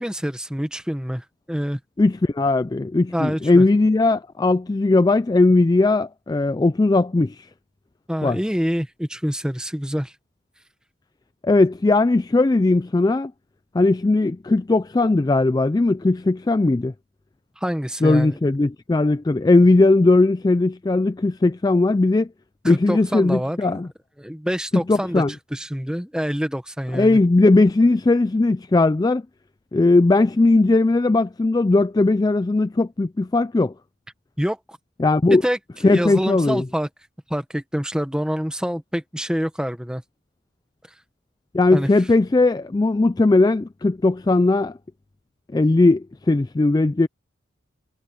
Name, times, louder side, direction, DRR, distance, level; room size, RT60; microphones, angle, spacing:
voice 1, 0.0-1.8 3.1-3.6 8.1-10.1 17.6-18.4 22.6-23.6 24.2-25.2 25.5-27.2 34.4-34.8 35.4-36.9 37.3-40.0 41.7-41.9, equal, 5° right, 1.2 m, -26 dB
voice 2, 2.0-7.5 8.2-8.4 11.4-13.3 13.7-16.9 18.0-22.3 22.6-23.9 24.7-25.3 26.9-29.2 29.7-33.7 35.0-35.4 35.8-36.6 41.5-44.8 45.5-47.1, left 2 dB, 20° left, 0.3 m, -18 dB
head